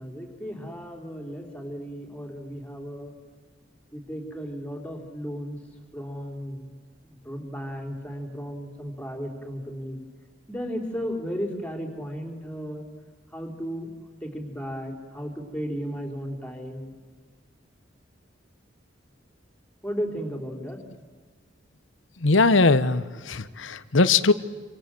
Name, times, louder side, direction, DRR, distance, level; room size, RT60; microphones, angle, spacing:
voice 1, 0.0-3.1 3.9-5.6 5.9-6.7 7.0-10.0 10.5-12.9 13.3-16.9 19.8-20.8, equal, 5° left, 2 dB, 3.9 m, -35 dB
voice 2, 22.2-24.3, left 3 dB, 75° left, 15 dB, 1.0 m, -20 dB
27.5 x 26.5 x 7.7 m, 1.5 s
head